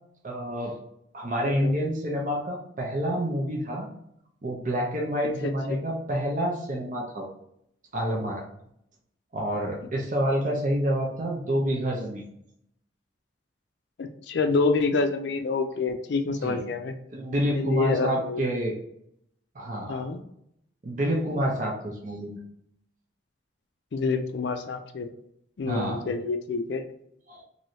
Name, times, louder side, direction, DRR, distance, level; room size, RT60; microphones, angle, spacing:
voice 1, 0.2-0.7 1.1-3.9 4.4-7.3 7.9-8.4 9.3-12.2 16.4-16.6 17.1-18.8 19.5-20.1 20.8-22.4 25.7-26.0 27.3-27.4, equal, 40° right, -2 dB, 0.6 m, -28 dB
voice 2, 1.4-1.8 5.4-5.8 14.0-16.9 17.5-18.4 19.9-20.2 23.9-25.1 25.6-26.8, left 4 dB, 60° left, 7 dB, 0.4 m, -27 dB
3.1 x 2.6 x 2.7 m, 0.74 s
head